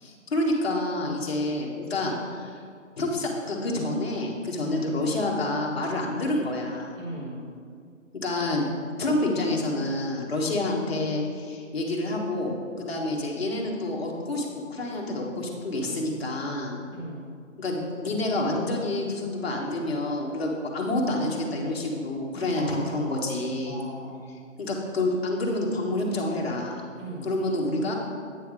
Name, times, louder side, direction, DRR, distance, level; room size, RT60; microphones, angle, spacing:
voice 1, 0.0-2.5 3.0-6.9 8.1-8.7 9.0-16.8 17.6-23.8 24.6-26.8 27.2-27.9, left 2 dB, 50° left, -1 dB, 1.4 m, -28 dB
voice 2, 4.5-4.9 6.9-7.4 16.9-17.2 22.5-23.3 23.6-24.2 27.0-27.3, right 1 dB, 20° right, -6 dB, 1.6 m, -38 dB
8.6 x 3.5 x 6.1 m, 2.1 s
figure-of-eight pair, 160°, 40 cm